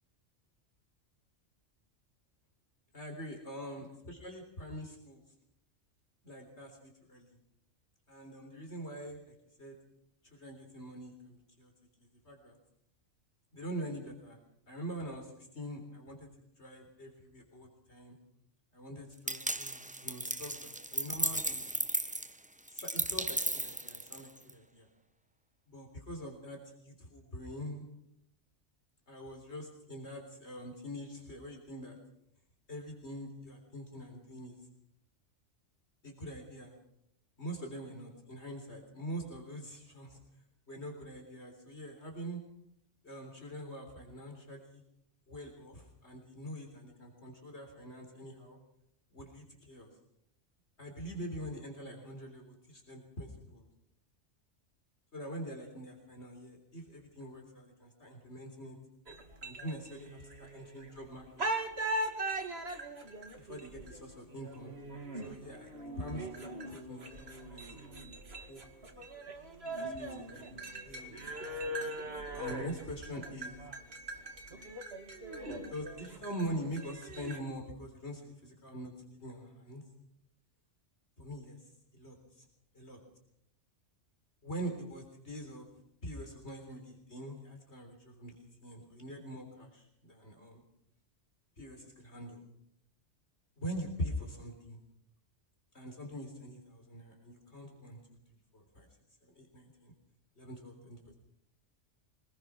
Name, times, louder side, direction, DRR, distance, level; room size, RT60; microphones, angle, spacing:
voice 1, 2.9-5.2 6.2-7.4 8.1-9.8 10.3-11.7 12.0-12.6 13.5-14.4 14.7-16.3 16.6-18.2 18.7-21.7 22.7-24.9 25.7-27.8 29.1-32.0 32.7-34.6 36.0-36.7 37.4-40.2 40.7-42.4 43.0-44.8 45.3-48.6 49.1-49.9 50.8-53.7 55.1-58.8 59.4-61.5 63.4-64.8 65.2-68.2 68.5-69.0 69.8-70.6 70.8-71.7 72.3-73.6 75.7-79.8 81.2-82.5 82.7-83.0 84.4-85.7 86.0-90.6 91.6-92.4 93.6-94.8 95.7-98.0 98.3-98.9 99.2-99.9 100.4-101.0, equal, 65° left, 2 dB, 4.0 m, -44 dB
sound 1, 19.3-24.5, right 1 dB, 10° right, 0.6 m, -35 dB
sound 2, 59.1-61.0 61.4-77.4, right 1 dB, 60° right, 2.6 m, -41 dB
24.5 x 19.5 x 6.1 m, 0.76 s
omnidirectional pair, 1.2 m